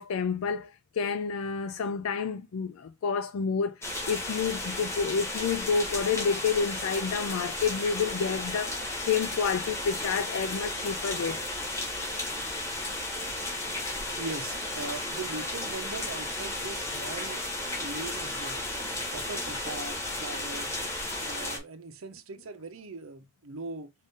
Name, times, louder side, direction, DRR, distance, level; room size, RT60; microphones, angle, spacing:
voice 1, 0.0-11.5, left 6 dB, 80° left, 0.4 m, -29 dB
sound 1, 3.8-21.6, left 1 dB, 15° left, 1.7 m, -34 dB
voice 2, 14.2-17.4 17.8-18.7 19.1-20.8 21.2-23.9, right 3 dB, 85° right, 0.7 m, -40 dB
5.4 x 2.5 x 3.6 m
head